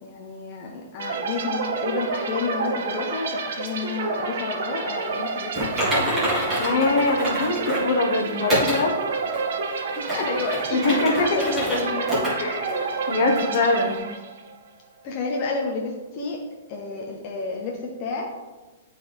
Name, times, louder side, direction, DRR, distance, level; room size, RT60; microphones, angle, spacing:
voice 1, 0.0-5.7 6.0-6.3 10.0-12.1 12.5-13.0 15.0-16.4 16.7-18.3, left 4 dB, 25° left, -1 dB, 0.6 m, -30 dB
sound 1, 1.0-14.5, right 4 dB, 55° right, 0.8 m, -29 dB
Typing, 5.6-7.9 8.5-8.8 9.3-9.4 9.9-11.8 12.1-12.3 12.7-12.8 13.4-13.5, equal, 5° right, 1.7 m, -26 dB
voice 2, 6.6-8.9 10.7-11.4 12.4-14.1, left 3 dB, 50° left, 3 dB, 0.9 m, -23 dB
9.6 x 3.9 x 3.4 m, 1.2 s
hypercardioid pair, 180°, 0 cm